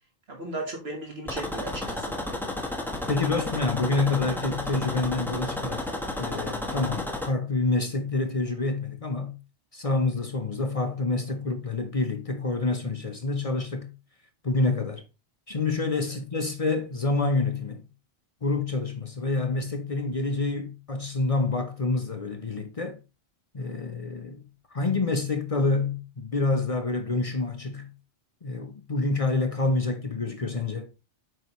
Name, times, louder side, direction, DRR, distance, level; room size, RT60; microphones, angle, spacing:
voice 1, 0.3-2.2 16.1-16.2, right 2 dB, 60° right, 1.6 m, -36 dB
sound 1, 1.3-7.3, left 1 dB, ahead, 1.1 m, -32 dB
voice 2, 3.1-5.9 6.2-9.4 9.7-13.9 14.4-15.0 15.5-17.9 18.4-23.0 23.5-24.5 24.7-27.9 28.4-30.9, left 3 dB, 35° left, 0.7 m, -27 dB
7.8 x 5.4 x 3.0 m
omnidirectional pair, 1.2 m